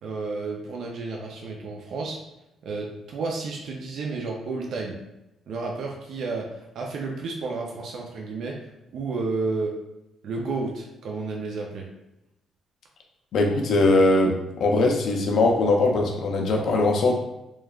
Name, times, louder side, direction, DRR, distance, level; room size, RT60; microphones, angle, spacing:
voice 1, 0.0-2.2 2.6-5.0 5.5-9.7 10.2-11.9, right 3 dB, 70° right, 0 dB, 0.4 m, -31 dB
voice 2, 13.3-14.3 14.6-17.1, left 2 dB, 70° left, 1 dB, 0.5 m, -20 dB
3.0 x 2.2 x 2.3 m, 0.91 s
cardioid pair, 90°, 0 cm